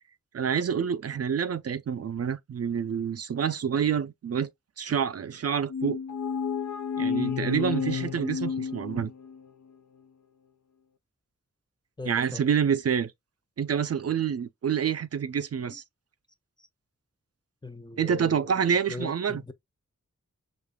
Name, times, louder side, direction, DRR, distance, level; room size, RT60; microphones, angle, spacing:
voice 1, 0.3-4.5 4.8-6.0 7.0-9.1 12.1-13.1 13.6-15.8 18.0-19.4, right 7 dB, 55° right, 0.4 m, -27 dB
sound 1, 5.7-9.5, left 6 dB, 70° left, 0.5 m, -31 dB
voice 2, 12.0-12.4 16.6-16.7 17.6-18.5 18.9-19.5, left 3 dB, 15° left, 0.4 m, -40 dB
5.0 x 2.4 x 2.2 m
wide cardioid pair, 55°, 29 cm